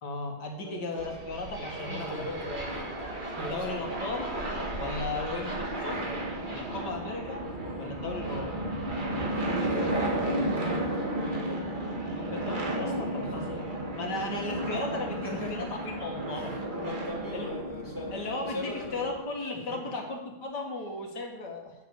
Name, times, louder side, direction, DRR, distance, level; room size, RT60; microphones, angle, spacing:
voice 1, 0.0-2.3 3.4-4.3 4.8-6.1 6.5-7.5 7.8-8.7 12.1-13.7 13.9-16.6 17.3-17.5 18.1-21.8, left 2 dB, 85° left, 2 dB, 2.5 m, -36 dB
voice 2, 0.6-1.1 1.6-2.9 3.2-3.7 5.1-5.4 5.9-6.2 9.3-10.9 11.1-11.6 13.2-13.5 15.2-15.7 16.3-18.1 18.4-19.1 19.5-19.8, left 1 dB, 10° right, -3 dB, 2.0 m, -39 dB
sound 1, 1.0-19.2, right 1 dB, 30° right, 2.0 m, -33 dB
9.2 x 7.1 x 8.2 m, 1.1 s
omnidirectional pair, 1.8 m